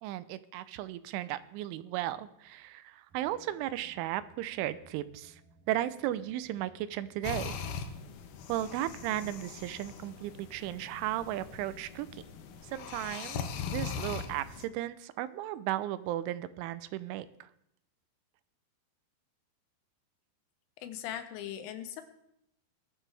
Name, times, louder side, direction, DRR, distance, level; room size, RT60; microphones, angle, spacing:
voice 1, 0.0-5.4 5.7-7.5 8.5-12.2 12.6-17.5, right 14 dB, 90° right, 14 dB, 3.1 m, -35 dB
sound 1, 3.1-13.2, right 2 dB, 50° right, 3.9 m, -61 dB
sound 2, 7.2-14.7, left 7 dB, 75° left, 2.4 m, -41 dB
voice 2, 20.8-22.0, left 11 dB, 90° left, 9 dB, 3.5 m, -39 dB
20.0 x 12.0 x 3.4 m, 0.76 s
omnidirectional pair, 5.4 m